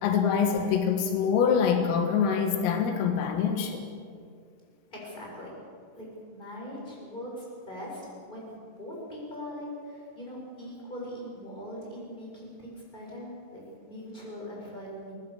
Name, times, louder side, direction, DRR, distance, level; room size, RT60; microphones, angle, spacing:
voice 1, 0.0-3.8, left 7 dB, 85° left, 5 dB, 4.3 m, -25 dB
voice 2, 4.9-5.6 5.9-15.1, equal, 10° left, -3 dB, 6.9 m, -41 dB
23.5 x 19.0 x 7.0 m, 2.2 s
omnidirectional pair, 5.9 m